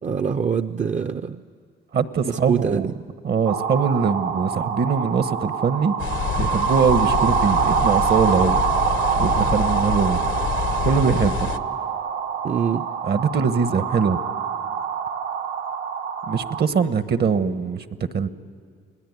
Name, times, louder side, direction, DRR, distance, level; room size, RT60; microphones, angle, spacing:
voice 1, 0.0-1.4 2.2-2.9 12.4-12.9, right 6 dB, 35° right, 9 dB, 0.6 m, -24 dB
voice 2, 1.9-2.9 3.2-5.9 6.4-8.6 9.2-10.2 10.8-11.5 13.1-14.2 16.3-17.8 18.1-18.3, right 6 dB, 55° right, 12 dB, 1.2 m, -22 dB
sound 1, 3.4-16.6, right 7 dB, 70° right, 1.2 m, -25 dB
sound 2, 6.0-11.6, left 9 dB, 75° left, 0.9 m, -27 dB
29.0 x 19.5 x 9.6 m, 2.1 s
cardioid pair, 90°, 20 cm